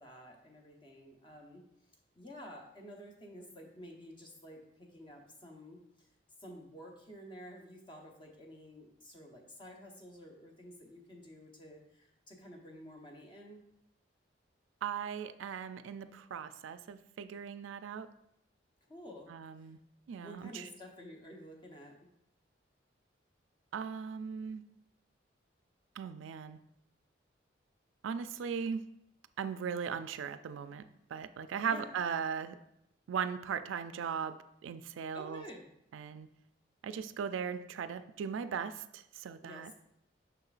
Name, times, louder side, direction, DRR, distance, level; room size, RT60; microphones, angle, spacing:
voice 1, 0.0-1.6 2.1-6.1 6.4-13.6 18.9-19.3 19.6-19.7 20.1-22.0 31.6-31.9 35.1-35.7 39.4-39.7, equal, 25° left, 1 dB, 0.9 m, -51 dB
voice 2, 14.8-18.1 19.3-19.8 20.1-20.7 23.7-24.6 26.0-26.6 28.0-28.8 29.4-30.8 31.1-32.6 33.1-35.4 35.9-36.3 36.8-39.7, right 7 dB, 90° right, 12 dB, 0.3 m, -38 dB
6.6 x 6.0 x 2.4 m, 0.78 s
head